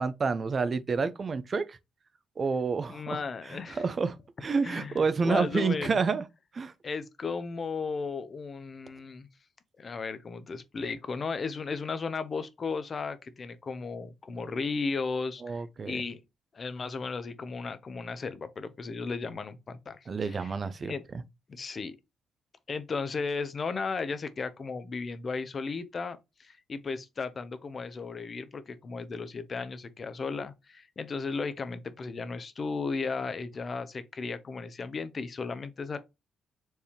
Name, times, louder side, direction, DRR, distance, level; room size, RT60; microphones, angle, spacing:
voice 1, 0.0-1.8 2.4-6.2 6.5-6.7 15.4-16.0 20.1-21.2, right 4 dB, 45° right, 0.5 m, -29 dB
voice 2, 2.9-3.8 4.6-6.0 6.8-9.3 9.8-16.2 16.5-20.5 20.8-21.0 21.5-22.0 22.7-36.0, left 4 dB, 45° left, 0.7 m, -35 dB
4.5 x 3.4 x 2.9 m
cardioid pair, 80°, 0 cm